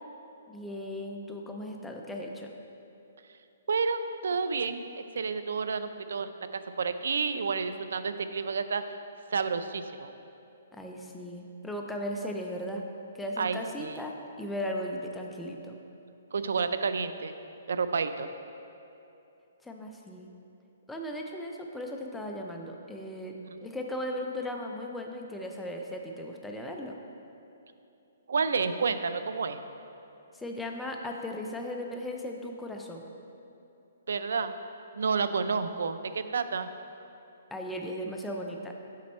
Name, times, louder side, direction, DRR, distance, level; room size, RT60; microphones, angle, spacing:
voice 1, 0.5-2.5 10.7-12.8 13.1-15.8 19.6-20.3 20.9-23.3 23.6-27.0 30.3-33.0 37.5-38.7, left 1 dB, 5° left, 1 dB, 0.4 m, -37 dB
voice 2, 3.7-9.0 9.3-10.1 13.4-14.0 16.3-17.3 17.7-18.3 23.4-23.5 28.3-29.6 34.1-34.5 35.0-36.7, right 5 dB, 80° right, 11 dB, 0.4 m, -30 dB
7.5 x 5.2 x 4.2 m, 2.8 s
hypercardioid pair, 165°, 0 cm